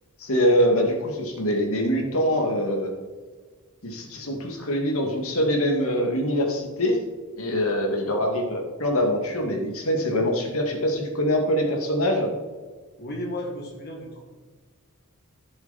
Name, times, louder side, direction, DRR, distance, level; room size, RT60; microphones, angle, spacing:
voice 1, 0.2-2.9 3.8-7.0 7.4-12.3, equal, 70° left, 2 dB, 2.1 m, -24 dB
voice 2, 13.0-14.3, left 1 dB, 50° left, 0 dB, 1.8 m, -34 dB
15.5 x 7.1 x 4.1 m, 1.4 s
head